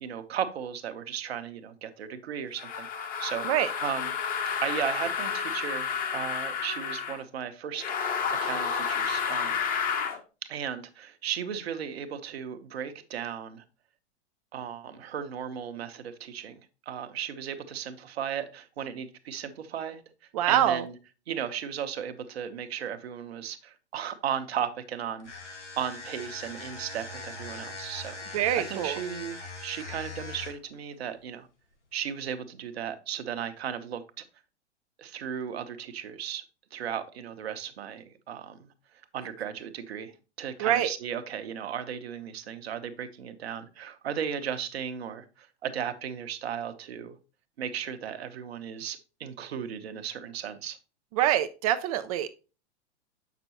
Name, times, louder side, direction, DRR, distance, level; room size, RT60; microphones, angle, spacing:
voice 1, 0.0-3.5 3.8-4.2 4.6-7.9 8.4-9.6 10.5-13.6 14.5-16.6 16.9-20.0 20.5-20.9 21.3-25.3 25.8-31.5 31.9-34.2 35.0-36.4 36.7-38.7 39.1-40.1 40.4-47.2 47.6-50.8, right 8 dB, 60° right, 9 dB, 1.0 m, -35 dB
sound 1, 2.6-7.2 7.8-10.2, left 6 dB, 25° left, 1.0 m, -30 dB
voice 2, 20.3-20.8 28.3-29.0 40.6-40.9 51.2-52.3, right 11 dB, 35° right, 11 dB, 0.4 m, -25 dB
sound 2, 25.2-30.7, left 3 dB, 80° left, 2.4 m, -41 dB
7.6 x 6.0 x 2.9 m, 0.33 s
figure-of-eight pair, 100°, 35 cm